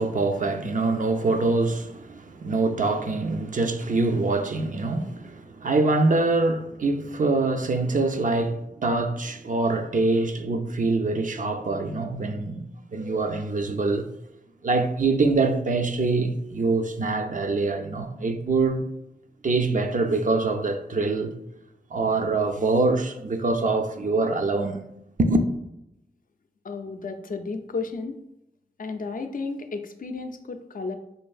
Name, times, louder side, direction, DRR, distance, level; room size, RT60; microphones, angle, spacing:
voice 1, 0.0-12.7 12.9-14.1 14.6-18.9 19.4-21.3 21.9-24.8 25.2-25.5, right 3 dB, 55° right, 0.4 m, -24 dB
voice 2, 26.6-28.2 28.8-31.0, left 4 dB, 60° left, 0.4 m, -33 dB
4.6 x 2.5 x 2.3 m
cardioid pair, 45°, 16 cm